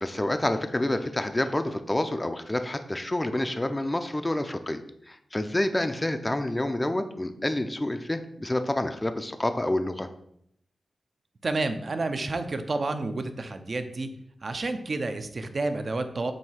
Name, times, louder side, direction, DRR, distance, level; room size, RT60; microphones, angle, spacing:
voice 1, 0.0-10.1, left 1 dB, 15° left, 8 dB, 0.5 m, -28 dB
voice 2, 11.4-14.1 14.4-16.3, right 3 dB, 45° right, 8 dB, 0.6 m, -30 dB
7.7 x 2.8 x 5.6 m, 0.71 s
wide cardioid pair, 115°, 0 cm